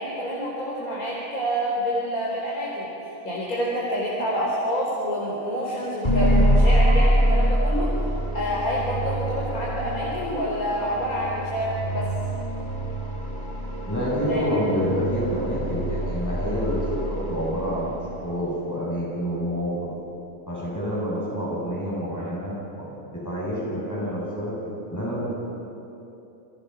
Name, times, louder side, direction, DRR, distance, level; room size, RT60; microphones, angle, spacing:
voice 1, 0.0-2.9 3.2-7.9 8.3-12.1 14.3-14.4, equal, 90° left, -5 dB, 4.2 m, -27 dB
sound 1, 6.0-18.2, equal, 35° left, 5.4 m, -25 dB
voice 2, 13.9-17.9 18.2-19.7 20.5-22.9 23.2-24.5 24.9-25.3, equal, 10° left, -7 dB, 8.1 m, -27 dB
30.0 x 22.5 x 5.9 m, 2.9 s
omnidirectional pair, 1.5 m